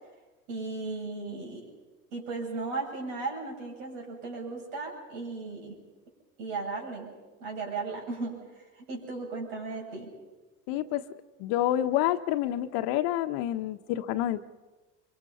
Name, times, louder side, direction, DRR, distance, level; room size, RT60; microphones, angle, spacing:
voice 1, 0.5-1.6 2.1-5.8 6.4-7.1 7.4-10.1, right 3 dB, 80° right, -1 dB, 7.9 m, -36 dB
voice 2, 10.7-11.0 11.4-14.5, left 13 dB, 70° left, 11 dB, 1.2 m, -28 dB
25.0 x 23.5 x 5.6 m, 1.2 s
supercardioid pair, 95°, 39 cm